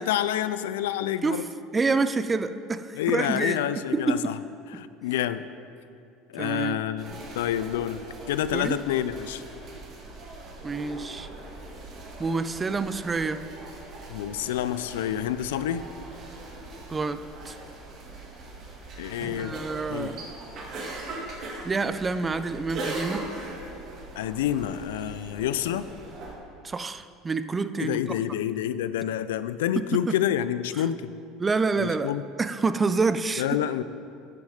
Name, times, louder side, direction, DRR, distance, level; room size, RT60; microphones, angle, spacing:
voice 1, 0.0-1.4 3.0-4.4 4.7-5.4 6.3-9.4 14.1-15.8 19.0-19.6 19.9-20.1 24.2-25.9 27.8-31.1 31.8-32.2 33.4-33.8, left 11 dB, 80° left, 14 dB, 0.3 m, -28 dB
voice 2, 1.7-3.6 3.9-4.3 6.4-6.8 8.5-8.8 10.6-11.3 12.2-13.4 16.9-17.6 19.4-20.3 21.6-23.3 26.6-28.2 29.8-30.1 30.8-30.9 31.4-32.1 32.4-33.5, right 4 dB, 20° right, 13 dB, 0.4 m, -27 dB
sound 1, 7.0-26.3, right 2 dB, 50° right, 1.9 m, -40 dB
10.0 x 6.2 x 5.0 m, 2.5 s
hypercardioid pair, 85°, 0 cm